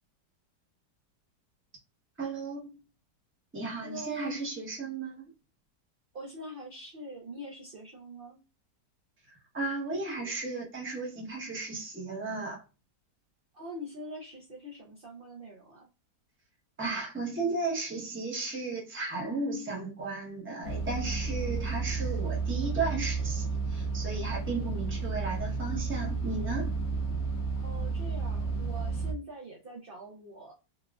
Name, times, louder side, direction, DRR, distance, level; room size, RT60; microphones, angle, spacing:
voice 1, 2.2-2.7 3.5-5.3 9.3-12.6 16.8-26.7, right 3 dB, 15° right, 0.5 m, -35 dB
voice 2, 3.8-4.3 6.1-8.4 13.5-15.9 27.6-30.5, equal, 70° right, 0.5 m, -43 dB
sound 1, 20.6-29.1, right 4 dB, 70° left, 0.6 m, -32 dB
4.0 x 2.4 x 2.3 m
omnidirectional pair, 1.9 m